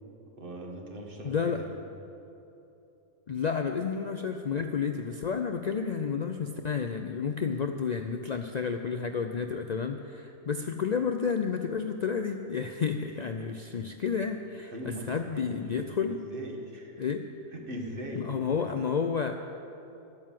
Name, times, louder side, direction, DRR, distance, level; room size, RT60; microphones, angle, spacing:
voice 1, 0.4-1.8 14.7-17.0 17.5-18.7, equal, 40° right, 1 dB, 1.7 m, -41 dB
voice 2, 1.2-1.6 3.3-16.2 17.0-17.3 18.1-19.3, left 6 dB, 80° left, 6 dB, 0.3 m, -31 dB
12.0 x 9.4 x 7.5 m, 2.9 s
omnidirectional pair, 1.4 m